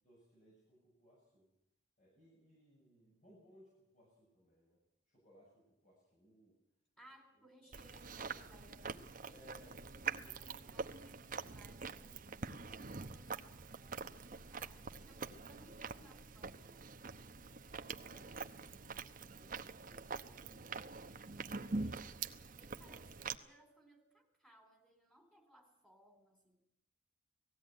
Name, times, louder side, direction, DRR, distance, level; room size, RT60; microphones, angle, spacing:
voice 1, 0.0-1.5 2.0-4.8 5.1-6.6 7.7-7.8 9.3-10.8 17.8-21.9, equal, 45° left, -5 dB, 7.7 m, -66 dB
voice 2, 7.0-12.3 12.6-17.0 21.8-22.1 22.6-26.7, right 1 dB, 5° left, 5 dB, 3.9 m, -65 dB
Chewing mastication, 7.7-23.3, right 4 dB, 45° right, 0.9 m, -45 dB
19.0 x 15.5 x 9.1 m, 0.81 s
head